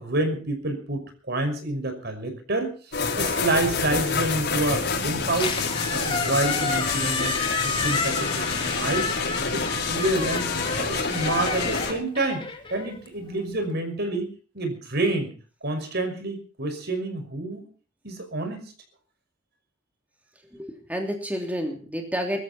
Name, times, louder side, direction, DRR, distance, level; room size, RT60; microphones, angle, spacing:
voice 1, 0.0-2.7 3.2-5.6 5.9-7.3 7.6-9.1 9.5-12.5 12.7-15.3 15.6-17.7 18.0-18.7, right 2 dB, 60° right, 7 dB, 5.8 m, -28 dB
sound 1, 2.9-11.9, left 4 dB, 60° left, 5.5 m, -27 dB
Squeak, 5.2-13.4, left 4 dB, 25° left, 3.1 m, -31 dB
voice 2, 20.5-22.4, equal, 10° right, 3 dB, 3.1 m, -30 dB
23.0 x 14.0 x 4.3 m, 0.39 s
head